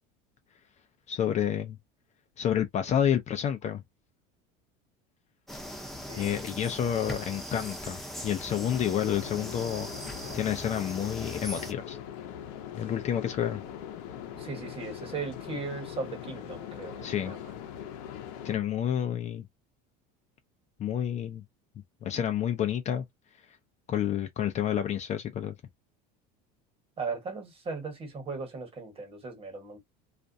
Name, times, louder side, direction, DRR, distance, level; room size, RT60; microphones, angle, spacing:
voice 1, 1.1-1.8 2.4-3.8 6.2-9.9 10.3-12.0 12.7-13.6 17.0-17.3 18.4-19.4 20.8-21.4 22.0-23.0 23.9-25.5, left 9 dB, 35° left, 0.5 m, -29 dB
sound 1, 5.5-11.7, equal, ahead, 0.7 m, -40 dB
sound 2, 8.5-18.6, left 9 dB, 75° left, 0.7 m, -41 dB
voice 2, 14.3-17.5 27.0-29.8, right 4 dB, 30° right, 1.3 m, -37 dB
2.4 x 2.1 x 2.6 m
supercardioid pair, 115°, 20 cm